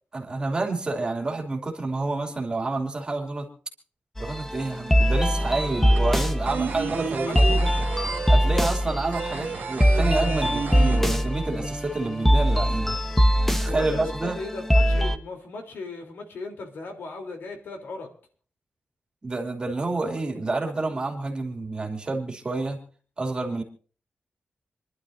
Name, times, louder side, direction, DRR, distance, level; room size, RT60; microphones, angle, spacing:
voice 1, 0.1-3.5 4.2-7.7 8.3-13.0 13.6-14.4 19.2-22.8 23.2-23.6, right 3 dB, 25° right, 2 dB, 2.7 m, -29 dB
sound 1, 4.2-15.2, equal, 5° left, 0.8 m, -22 dB
Guitar - Chip Bit Scale, 4.7-4.8 5.1-11.7 11.9-12.0 12.3-13.1, right 6 dB, 80° right, 1.4 m, -31 dB
voice 2, 7.1-7.7 13.7-18.1, left 3 dB, 90° left, 3 dB, 3.4 m, -37 dB
27.5 x 11.5 x 2.7 m, 0.42 s
wide cardioid pair, 150°, 4 cm